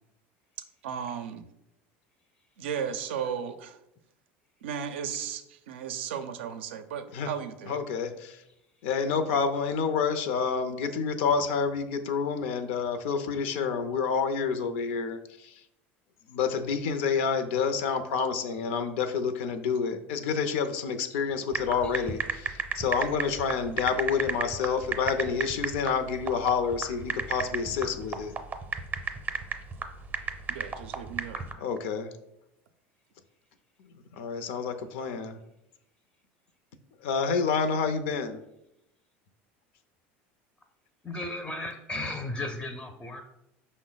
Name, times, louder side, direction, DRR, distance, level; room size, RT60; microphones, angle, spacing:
voice 1, 0.8-1.5 2.6-3.8 4.6-7.7 30.5-31.4, right 8 dB, 90° right, 9 dB, 0.4 m, -35 dB
voice 2, 7.7-8.4 8.8-15.6 16.3-28.3 31.6-32.1 34.1-35.4 37.0-38.4, left 6 dB, 75° left, 9 dB, 0.5 m, -28 dB
sound 1, 21.5-31.5, right 5 dB, 30° right, 0.6 m, -33 dB
voice 3, 41.0-43.2, left 2 dB, 15° left, 5 dB, 0.4 m, -35 dB
5.5 x 2.1 x 3.8 m, 0.83 s
supercardioid pair, 105°, 6 cm